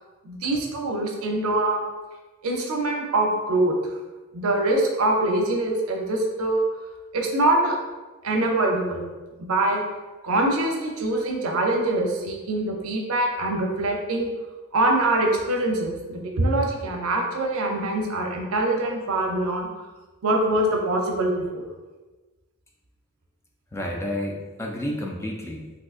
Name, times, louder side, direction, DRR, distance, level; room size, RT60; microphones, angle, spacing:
voice 1, 0.2-1.8 2.4-3.8 4.3-6.7 7.1-7.8 8.2-9.1 9.4-9.8 10.2-14.3 14.7-19.7 20.2-21.7, right 2 dB, 85° right, 1 dB, 0.6 m, -24 dB
voice 2, 23.7-25.7, left 1 dB, 10° left, 0 dB, 0.3 m, -30 dB
3.7 x 2.6 x 2.4 m, 1.2 s
head